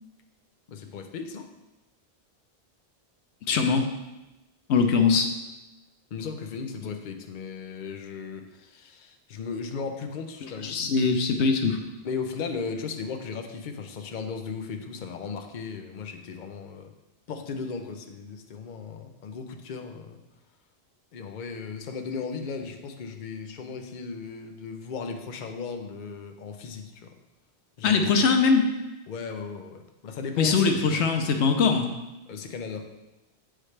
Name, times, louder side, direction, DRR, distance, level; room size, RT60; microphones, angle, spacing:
voice 1, 0.7-1.5 6.1-10.8 12.0-16.9 17.3-20.2 21.1-27.1 27.8-28.1 29.1-31.0 32.3-32.9, left 5 dB, 50° left, 4 dB, 0.7 m, -36 dB
voice 2, 3.5-3.9 4.7-5.3 10.6-11.8 27.8-28.7 30.4-31.9, left 5 dB, 90° left, 5 dB, 1.0 m, -22 dB
8.7 x 5.0 x 3.2 m, 1.0 s
omnidirectional pair, 1.1 m